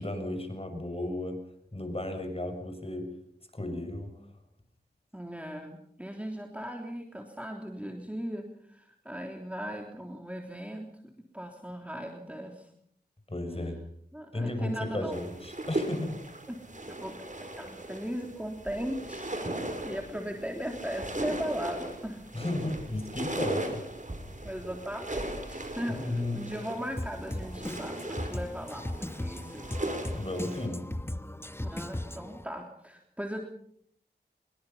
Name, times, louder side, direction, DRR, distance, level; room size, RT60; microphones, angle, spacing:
voice 1, 0.0-1.4 1.7-3.1 3.5-4.1 13.3-13.8 14.3-16.2 22.3-23.8 25.9-26.4 30.1-31.1, left 1 dB, 35° left, 6 dB, 6.5 m, -34 dB
voice 2, 5.1-10.9 11.3-12.7 14.1-15.1 16.5-16.6 16.9-17.3 17.6-22.3 24.4-29.7 31.6-33.4, equal, 5° right, 2 dB, 3.5 m, -38 dB
sound 1, 15.1-30.7, right 1 dB, 45° right, 6.0 m, -38 dB
Drum kit, 27.0-32.4, left 1 dB, 15° left, 1.3 m, -37 dB
25.5 x 23.0 x 5.8 m, 0.66 s
wide cardioid pair, 50°, 18 cm